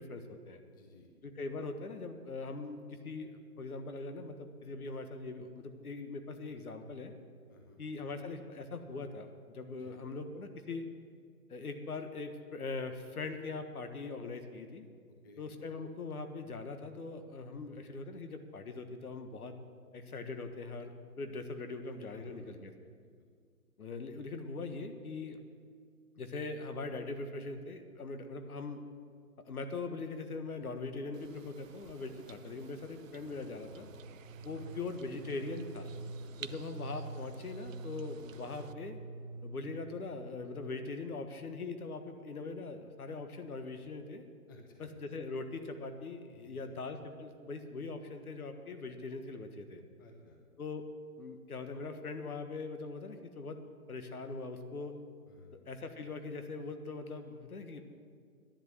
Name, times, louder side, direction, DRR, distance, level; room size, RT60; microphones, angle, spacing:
voice 1, 0.0-0.6 1.2-7.1 7.8-10.8 11.5-14.9 15.4-19.5 19.9-22.7 23.8-25.4 26.2-28.8 29.5-33.9 34.4-35.9 36.4-39.0 39.4-44.2 44.8-49.8 50.6-50.8 51.2-53.6 53.9-55.0 55.5-57.8, left 3 dB, 70° left, 7 dB, 1.6 m, -41 dB
voice 2, 0.6-1.1 7.5-7.8 9.8-10.0 15.1-15.4 17.6-17.8 22.1-22.9 34.4-34.8 36.2-36.6 44.5-44.9 46.3-46.8 50.0-50.4 55.3-55.5, left 2 dB, 15° left, 2 dB, 0.6 m, -58 dB
sound 1, 31.1-38.7, right 9 dB, 60° right, 0.6 m, -54 dB
sound 2, 33.1-41.0, right 3 dB, 20° right, 0.9 m, -47 dB
11.0 x 10.5 x 8.0 m, 2.1 s
hypercardioid pair, 150°, 45 cm